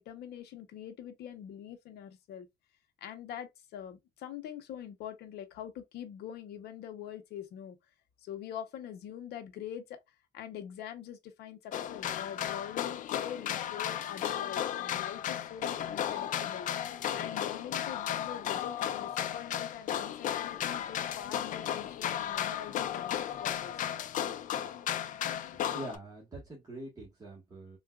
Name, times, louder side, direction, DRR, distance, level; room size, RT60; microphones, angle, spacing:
voice 1, 0.0-2.5 3.0-7.8 8.2-10.0 10.3-16.7 17.1-23.7, left 9 dB, 75° left, 0.8 m, -44 dB
sound 1, 11.7-26.0, left 10 dB, 50° left, 0.4 m, -34 dB
voice 2, 25.4-27.8, right 1 dB, 20° right, 1.4 m, -44 dB
3.8 x 2.4 x 2.3 m
cardioid pair, 110°, 17 cm